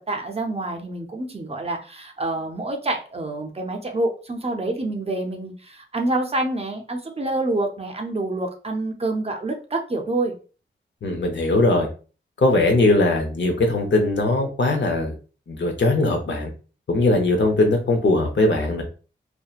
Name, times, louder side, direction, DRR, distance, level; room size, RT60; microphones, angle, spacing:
voice 1, 0.1-10.3, right 2 dB, 30° right, 3 dB, 0.5 m, -27 dB
voice 2, 11.0-11.9 12.4-15.1 15.5-16.5 16.9-18.8, left 2 dB, 70° left, 3 dB, 0.7 m, -20 dB
2.7 x 2.1 x 2.3 m, 0.36 s
wide cardioid pair, 90°, 19 cm